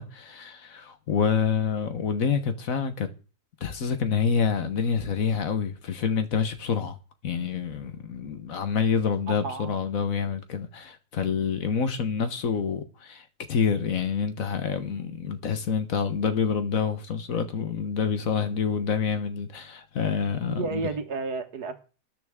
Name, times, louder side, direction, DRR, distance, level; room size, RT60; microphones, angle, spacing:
voice 1, 0.0-3.1 3.6-7.0 7.2-20.8, left 6 dB, 60° left, 1.4 m, -27 dB
voice 2, 9.3-9.7 20.4-21.8, right 4 dB, 75° right, 1.8 m, -32 dB
13.0 x 10.5 x 3.6 m
omnidirectional pair, 1.7 m